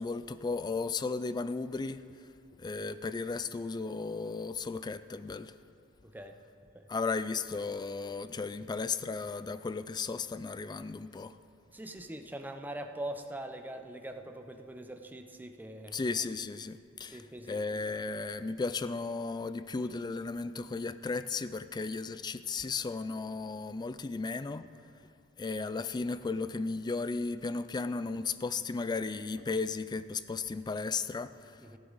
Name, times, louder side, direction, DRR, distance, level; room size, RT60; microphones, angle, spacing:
voice 1, 0.0-2.0 2.6-5.5 6.9-11.4 15.9-24.7 25.4-31.6, left 4 dB, 20° left, 13 dB, 0.3 m, -35 dB
voice 2, 11.7-16.0 17.1-17.8 31.6-31.8, right 1 dB, 10° right, 5 dB, 0.7 m, -42 dB
14.5 x 11.0 x 4.0 m, 2.3 s
head